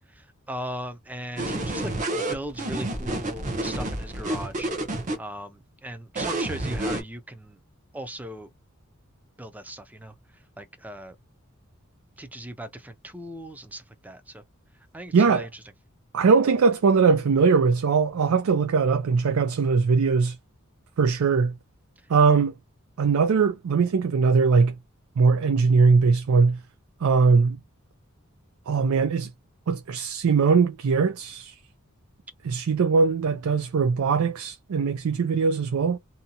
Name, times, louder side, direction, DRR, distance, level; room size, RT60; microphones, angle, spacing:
voice 1, 0.1-4.7 5.2-7.6 7.9-8.5 9.4-11.2 12.2-14.4 14.9-15.6, right 1 dB, 10° right, 0.4 m, -38 dB
sound 1, 1.4-5.2 6.2-7.0, right 1 dB, 35° right, 0.8 m, -29 dB
voice 2, 15.1-15.5 16.1-20.3 21.0-21.5 22.1-22.5 23.0-24.7 25.2-26.6 27.0-27.6 28.7-29.3 29.7-31.5 32.4-36.0, right 5 dB, 85° right, 0.4 m, -21 dB
2.7 x 2.2 x 2.8 m
head